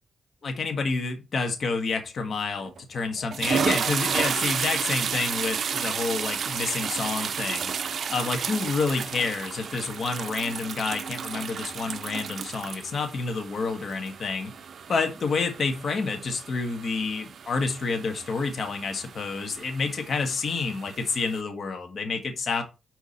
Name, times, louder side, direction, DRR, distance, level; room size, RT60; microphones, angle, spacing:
voice 1, 0.4-7.7 8.1-14.5 14.9-22.6, left 4 dB, 60° left, 5 dB, 1.5 m, -29 dB
sound 1, 2.6-2.8 3.2-21.4, right 7 dB, 65° right, 0.5 m, -32 dB
6.0 x 4.6 x 4.2 m, 0.27 s
cardioid pair, 85°, 0 cm